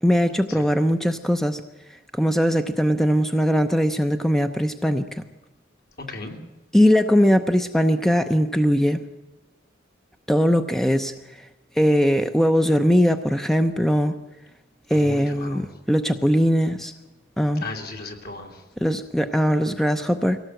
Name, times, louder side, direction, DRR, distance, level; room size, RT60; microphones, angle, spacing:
voice 1, 0.0-1.6 2.2-5.0 6.7-9.0 10.3-11.5 11.8-14.1 14.9-16.9 17.4-17.6 18.8-20.4, equal, ahead, 8 dB, 0.7 m, -20 dB
voice 2, 6.0-6.3 14.9-15.6 17.6-18.6, left 3 dB, 55° left, 4 dB, 3.1 m, -35 dB
23.0 x 17.5 x 7.8 m, 1.0 s
head